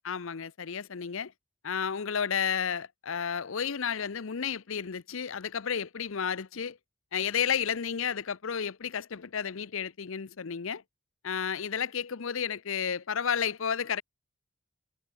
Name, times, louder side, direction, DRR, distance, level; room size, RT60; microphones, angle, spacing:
voice 1, 0.0-1.3 1.6-6.8 7.1-10.8 11.2-14.0, left 7 dB, 65° left, 0.6 m, -32 dB
head